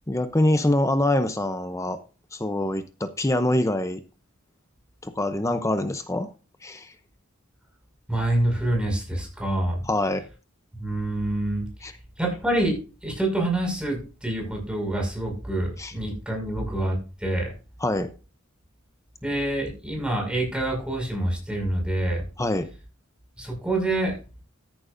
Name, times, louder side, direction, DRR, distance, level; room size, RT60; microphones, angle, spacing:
voice 1, 0.1-2.0 2.3-4.0 5.0-6.3 6.6-6.9 9.8-10.2 11.8-12.0 15.8-15.9 17.8-18.1 22.4-22.7, left 1 dB, 15° left, 9 dB, 0.7 m, -24 dB
voice 2, 8.1-9.8 10.8-11.7 12.2-12.7 13.0-16.9 17.2-17.5 19.2-22.2 23.4-24.1, right 1 dB, 5° right, 0 dB, 5.9 m, -26 dB
14.0 x 10.5 x 2.6 m, 0.33 s
head